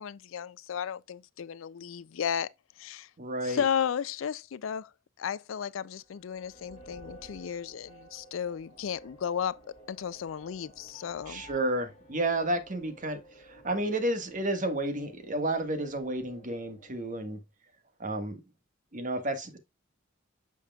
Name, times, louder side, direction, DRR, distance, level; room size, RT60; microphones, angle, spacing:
voice 1, 0.0-2.5 2.8-3.1 3.4-4.9 5.2-9.6 9.9-11.4, left 8 dB, 80° left, 0.4 m, -34 dB
voice 2, 3.2-3.6 11.3-17.4 18.0-18.4 18.9-19.6, right 1 dB, 40° right, 1.5 m, -31 dB
sound 1, 6.0-17.4, equal, 35° left, 3.7 m, -54 dB
9.1 x 6.5 x 2.3 m
head